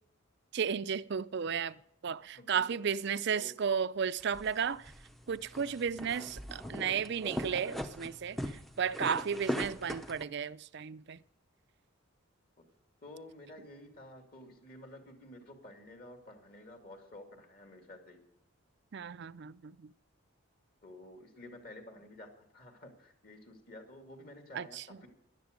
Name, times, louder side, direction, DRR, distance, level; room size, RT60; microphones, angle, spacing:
voice 1, 0.5-4.9 5.3-11.2 18.9-19.9 24.5-25.0, right 7 dB, 50° right, 0.4 m, -34 dB
voice 2, 2.3-3.6 6.2-6.3 6.6-6.8 13.0-18.2 20.8-25.1, left 1 dB, 40° left, 2.5 m, -51 dB
sound 1, 4.2-10.2, equal, ahead, 0.6 m, -40 dB
17.5 x 11.0 x 5.2 m
head